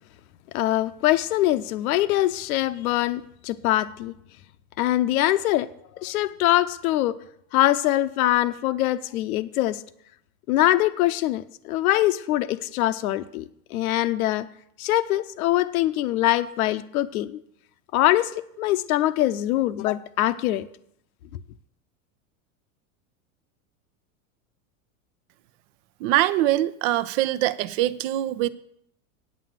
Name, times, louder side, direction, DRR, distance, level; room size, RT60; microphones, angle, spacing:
voice 1, 0.5-4.1 4.8-5.7 6.0-7.2 7.5-9.8 10.5-14.5 14.8-17.4 17.9-20.7, left 14 dB, 75° left, 12 dB, 0.8 m, -23 dB
voice 2, 26.0-28.5, right 14 dB, 60° right, 15 dB, 0.8 m, -23 dB
8.9 x 8.3 x 7.5 m, 0.73 s
hypercardioid pair, 105°, 43 cm